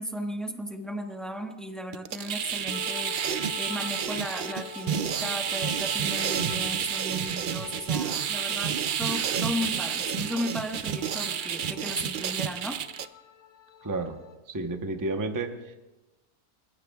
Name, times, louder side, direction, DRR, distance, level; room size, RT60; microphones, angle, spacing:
voice 1, 0.0-12.8, equal, ahead, 3 dB, 1.1 m, -35 dB
sound 1, 1.9-13.1, right 8 dB, 85° right, 0.4 m, -30 dB
sound 2, 2.7-14.4, left 10 dB, 75° left, 1.4 m, -45 dB
voice 2, 13.8-14.2 14.5-15.7, right 2 dB, 15° right, 5 dB, 0.8 m, -31 dB
28.0 x 15.5 x 2.4 m, 1.1 s
omnidirectional pair, 1.6 m